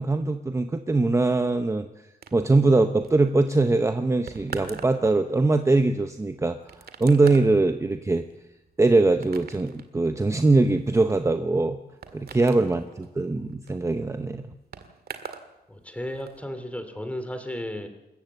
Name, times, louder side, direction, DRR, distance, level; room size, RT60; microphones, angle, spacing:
voice 1, 0.0-1.9 2.3-8.2 8.8-11.8 12.1-14.5, right 3 dB, 15° right, 8 dB, 0.8 m, -22 dB
sound 1, 2.2-15.5 15.8-16.4, right 6 dB, 70° right, 2.0 m, -44 dB
voice 2, 15.7-17.9, left 1 dB, 10° left, 8 dB, 2.5 m, -34 dB
27.5 x 14.5 x 8.0 m, 0.97 s
wide cardioid pair, 160°, 17 cm